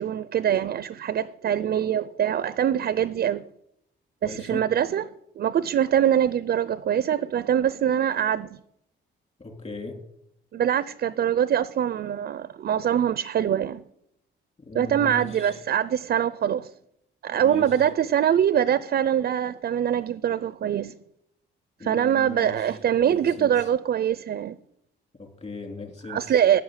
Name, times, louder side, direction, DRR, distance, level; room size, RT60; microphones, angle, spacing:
voice 1, 0.0-3.4 4.2-8.6 10.5-13.8 14.7-16.7 17.2-20.9 21.8-24.6 26.1-26.6, right 9 dB, 55° right, 0.6 m, -23 dB
voice 2, 4.2-4.7 9.4-10.0 14.6-15.5 17.4-17.7 21.8-22.7 23.0-23.5 25.2-26.4, left 3 dB, 35° left, 3.4 m, -38 dB
12.0 x 7.1 x 9.9 m
cardioid pair, 90°, 20 cm